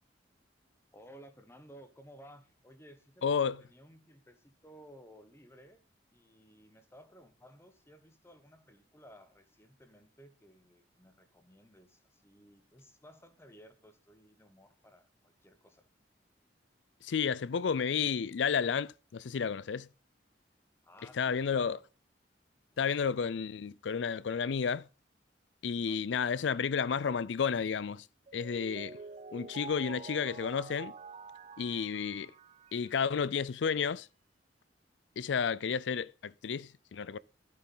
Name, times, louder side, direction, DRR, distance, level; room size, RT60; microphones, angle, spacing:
voice 1, 0.9-5.8 6.1-15.9 20.8-21.8 22.7-22.8 25.9-26.0, equal, 15° left, 1.1 m, -57 dB
voice 2, 3.2-3.6 17.0-19.9 21.2-21.8 22.8-24.9 25.6-28.1 28.3-29.0 29.3-30.9 31.6-32.3 32.7-34.1 35.2-37.2, left 6 dB, 80° left, 0.4 m, -31 dB
Mallet percussion, 28.3-33.2, right 4 dB, 35° right, 0.5 m, -48 dB
13.0 x 7.8 x 5.5 m
head